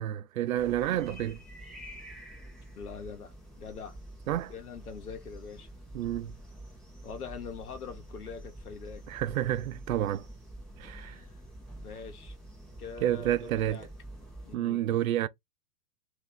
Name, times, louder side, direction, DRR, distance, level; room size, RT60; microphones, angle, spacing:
voice 1, 0.0-1.4 4.3-4.5 5.9-6.3 9.1-10.3 10.8-11.2 13.0-13.9 14.5-15.3, right 12 dB, 65° right, 0.5 m, -29 dB
sound 1, 0.5-14.6, right 1 dB, ahead, 0.4 m, -47 dB
voice 2, 2.7-4.0 4.5-5.7 7.0-9.0 10.8-11.4 11.8-12.4 12.8-13.9 14.4-14.8, left 5 dB, 75° left, 1.0 m, -43 dB
3.2 x 2.7 x 3.6 m
figure-of-eight pair, 110°, 46 cm